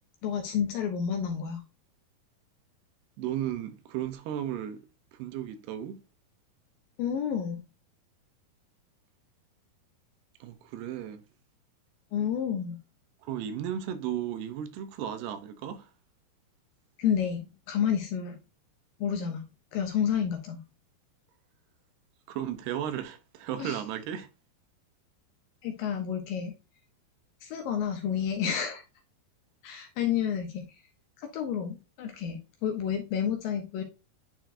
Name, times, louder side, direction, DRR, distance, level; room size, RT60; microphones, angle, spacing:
voice 1, 0.2-1.6 7.0-7.6 12.1-12.8 17.0-18.4 19.0-19.4 19.7-20.6 23.6-23.8 25.6-26.5 27.4-28.8 29.6-30.8 31.2-33.8, left 8 dB, 75° left, 2.3 m, -30 dB
voice 2, 3.2-4.8 5.1-6.0 10.4-11.2 13.2-15.9 22.3-24.3, right 10 dB, 85° right, 2.8 m, -35 dB
10.0 x 4.4 x 2.6 m
omnidirectional pair, 4.6 m